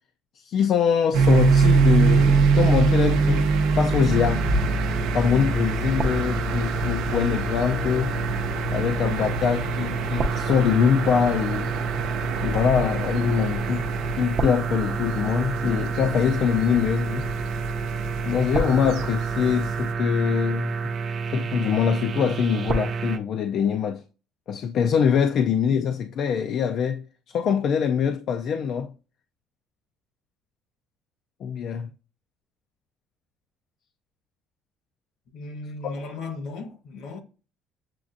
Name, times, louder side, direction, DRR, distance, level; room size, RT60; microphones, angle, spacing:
voice 1, 0.4-4.4 5.1-8.2 8.7-11.7 12.4-13.9 14.2-17.3 18.2-20.7 21.3-24.0 24.5-27.0 27.3-28.9 31.4-31.9, left 7 dB, 50° left, 0.3 m, -23 dB
sound 1, 1.1-19.9, right 4 dB, 90° right, 0.6 m, -25 dB
sound 2, 4.1-23.2, right 5 dB, 35° right, 0.5 m, -29 dB
voice 2, 35.3-37.2, left 3 dB, 65° left, 1.2 m, -36 dB
7.3 x 2.4 x 2.5 m
cardioid pair, 150°, 0 cm